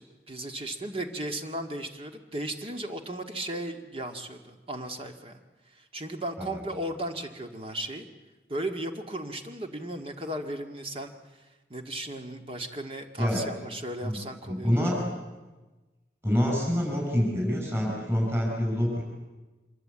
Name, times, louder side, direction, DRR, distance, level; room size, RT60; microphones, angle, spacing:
voice 1, 0.0-5.4 5.7-8.1 8.5-14.8, right 1 dB, 30° right, 5 dB, 1.9 m, -36 dB
voice 2, 14.5-15.0 16.2-19.0, equal, 15° right, -2 dB, 7.1 m, -26 dB
26.0 x 23.5 x 8.7 m, 1.2 s
head